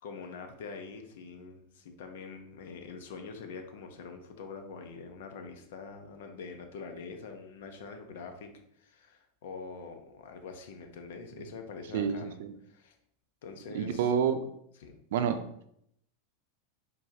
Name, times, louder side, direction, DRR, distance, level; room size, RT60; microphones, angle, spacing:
voice 1, 0.0-12.9 13.4-14.1 14.8-15.0, left 4 dB, 70° left, 0.8 m, -45 dB
voice 2, 11.9-12.5 13.7-14.4 15.1-15.6, right 7 dB, 70° right, 0.5 m, -29 dB
4.6 x 3.8 x 2.8 m
hypercardioid pair, 105°, 0 cm